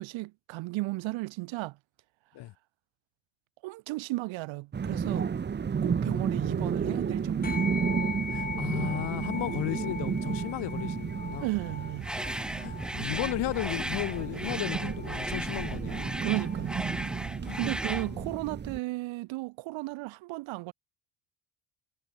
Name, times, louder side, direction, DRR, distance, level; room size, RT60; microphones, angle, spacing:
voice 1, 0.0-1.8 3.6-5.3 5.8-7.6 11.4-12.1 16.2-16.8 17.5-20.7, right 21 dB, 85° right, 5.8 m, -34 dB
sound 1, 4.7-18.8, right 6 dB, 25° right, 1.9 m, -32 dB
sound 2, 7.4-17.1, left 5 dB, 20° left, 4.3 m, -41 dB
voice 2, 8.3-11.5 12.6-16.1 17.4-17.6 17.9-18.2, left 16 dB, 65° left, 6.2 m, -35 dB
sound 3, 12.0-18.1, right 1 dB, ahead, 1.1 m, -36 dB
cardioid pair, 160°, 44 cm